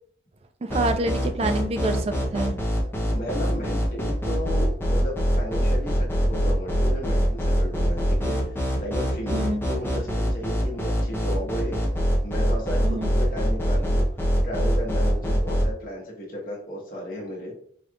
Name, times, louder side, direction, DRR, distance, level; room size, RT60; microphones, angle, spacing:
voice 1, 0.6-2.5 9.3-9.6 12.8-13.1, right 2 dB, 30° right, 8 dB, 0.3 m, -27 dB
sound 1, 0.7-15.6, equal, 10° left, 0.7 m, -23 dB
voice 2, 3.0-11.8 12.2-14.0 14.4-17.5, equal, 45° left, -3 dB, 1.3 m, -34 dB
4.9 x 3.1 x 2.4 m, 0.62 s
head